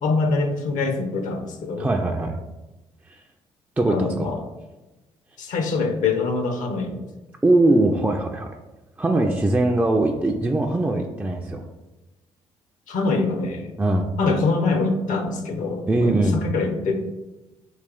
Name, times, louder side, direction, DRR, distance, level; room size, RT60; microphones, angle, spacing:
voice 1, 0.0-1.9 3.9-4.4 5.4-7.0 12.9-13.7 14.2-16.9, left 3 dB, 60° left, 5 dB, 0.6 m, -24 dB
voice 2, 1.8-2.4 3.1-3.2 3.8-4.3 7.4-8.5 9.0-11.6 13.8-14.1 15.9-16.4, right 2 dB, 10° right, 2 dB, 0.3 m, -21 dB
3.2 x 2.4 x 3.7 m, 1.1 s
hypercardioid pair, 45°, 15 cm